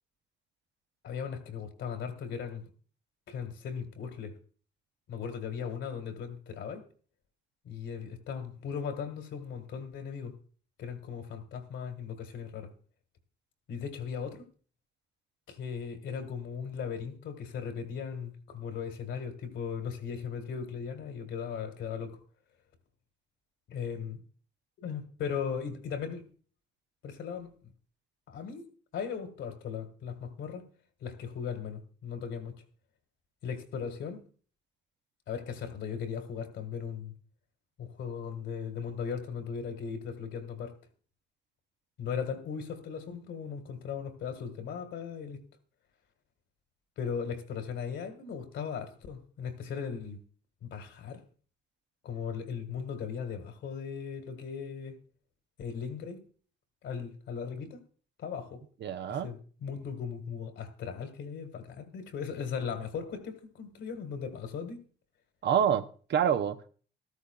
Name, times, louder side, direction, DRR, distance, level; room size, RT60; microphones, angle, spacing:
voice 1, 1.0-2.6 3.3-4.3 5.1-6.8 7.7-10.3 10.8-12.7 13.7-14.5 15.5-22.2 23.7-24.2 24.8-26.2 27.0-27.5 28.3-28.7 28.9-30.7 31.0-32.6 33.4-34.2 35.3-37.1 37.8-40.7 42.0-45.4 47.0-50.2 50.6-51.2 52.0-54.9 55.6-56.2 56.8-57.8 58.2-58.6 59.1-64.8, left 6 dB, 75° left, 1.9 m, -38 dB
voice 2, 58.8-59.3 65.4-66.7, right 8 dB, 60° right, 0.7 m, -27 dB
14.0 x 13.0 x 2.4 m
cardioid pair, 90°, 20 cm